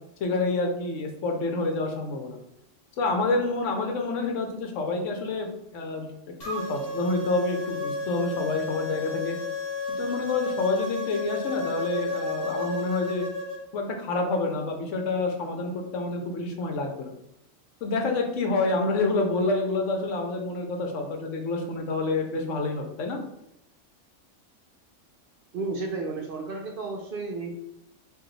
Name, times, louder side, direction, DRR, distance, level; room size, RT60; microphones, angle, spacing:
voice 1, 0.2-2.4 3.0-9.4 10.0-13.2 13.7-17.1 17.8-23.2, left 3 dB, 75° left, 3 dB, 1.1 m, -28 dB
sound 1, 6.4-13.6, left 3 dB, 50° left, 1.2 m, -32 dB
voice 2, 25.5-27.5, right 3 dB, 55° right, 1 dB, 0.7 m, -32 dB
4.9 x 2.6 x 3.1 m, 0.80 s
omnidirectional pair, 1.3 m